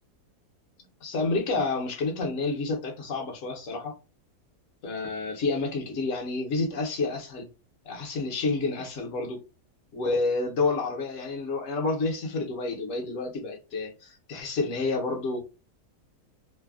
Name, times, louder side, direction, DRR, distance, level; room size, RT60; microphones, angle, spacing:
voice 1, 1.0-3.9 4.8-7.5 7.8-9.4 9.9-15.4, left 3 dB, 60° left, 1.0 m, -29 dB
3.2 x 2.1 x 2.3 m
omnidirectional pair, 1.7 m